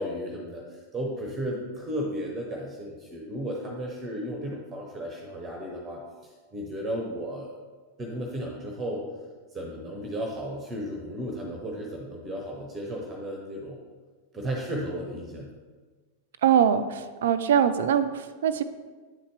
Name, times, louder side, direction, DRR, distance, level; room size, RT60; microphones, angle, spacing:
voice 1, 0.0-7.6 8.0-9.0 9.5-13.8 14.3-15.5, equal, 20° right, 0 dB, 0.9 m, -34 dB
voice 2, 16.4-18.6, right 8 dB, 60° right, 11 dB, 0.4 m, -23 dB
9.1 x 4.2 x 3.2 m, 1.4 s
figure-of-eight pair, 90°, 0 cm